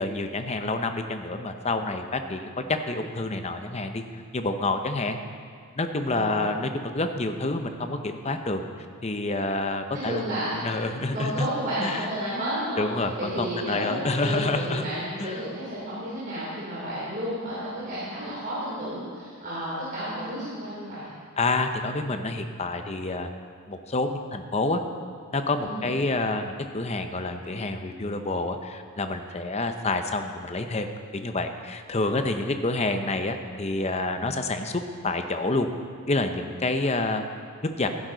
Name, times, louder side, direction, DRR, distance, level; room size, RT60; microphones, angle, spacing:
voice 1, 0.0-4.0 4.3-5.2 5.7-8.6 9.0-10.2 10.6-11.5 11.8-12.0 12.8-14.8 15.2-15.4 21.4-23.3 23.7-24.8 25.3-30.9 31.1-35.7 36.1-37.2 37.8-37.9, left 2 dB, 30° left, 7 dB, 0.7 m, -28 dB
voice 2, 6.1-6.5 9.9-10.6 11.1-21.1 25.6-25.9, equal, 40° right, -10 dB, 3.1 m, -32 dB
14.5 x 11.0 x 4.0 m, 2.1 s
head